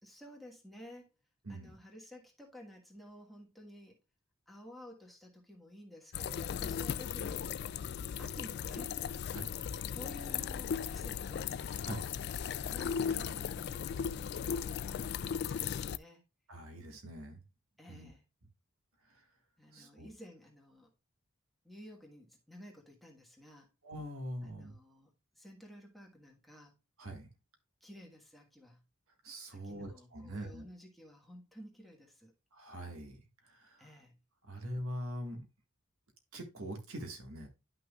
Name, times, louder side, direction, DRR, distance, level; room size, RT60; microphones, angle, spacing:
voice 1, 0.0-1.1 1.5-4.0 4.5-9.0 9.6-11.5 12.7-16.2 17.8-18.2 19.6-20.9 21.6-23.7 24.4-26.7 27.8-28.8 29.5-32.3 33.8-34.2, left 1 dB, ahead, 1.4 m, -53 dB
voice 2, 1.4-1.7 9.3-9.5 11.8-12.0 16.5-17.4 17.9-18.1 19.1-19.2 19.7-20.1 23.8-24.7 27.0-27.3 29.2-30.7 32.5-33.9 34.5-35.5 36.3-37.5, equal, 90° right, 1.8 m, -43 dB
sound 1, 6.1-16.0, left 7 dB, 50° left, 0.3 m, -37 dB
10.5 x 6.0 x 2.4 m
head